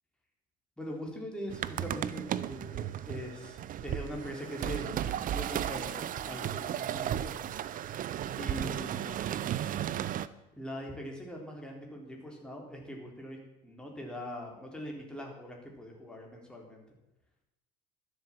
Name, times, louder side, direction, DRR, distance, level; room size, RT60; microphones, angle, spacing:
voice 1, 0.8-7.3 7.7-8.0 8.4-9.2 10.6-13.4 13.6-16.8, equal, 5° left, 0 dB, 3.9 m, -42 dB
sound 1, 1.5-10.3, right 11 dB, 40° right, 0.7 m, -35 dB
12.5 x 8.0 x 7.5 m, 0.90 s
hypercardioid pair, 80°, 21 cm